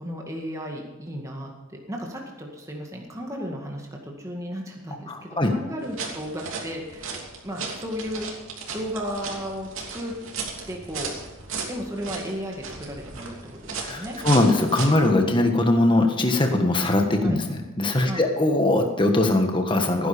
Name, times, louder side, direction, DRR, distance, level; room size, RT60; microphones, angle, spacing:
voice 1, 0.0-7.0 7.4-8.3 8.7-10.2 10.7-11.1 11.7-14.2 17.2-17.4 18.0-18.2, equal, 15° right, 0 dB, 2.0 m, -34 dB
voice 2, 5.1-5.5 13.8-20.1, left 2 dB, 25° left, 4 dB, 1.5 m, -21 dB
sound 1, 5.8-15.1, right 4 dB, 75° right, 3.0 m, -36 dB
16.5 x 10.5 x 5.1 m, 1.1 s
head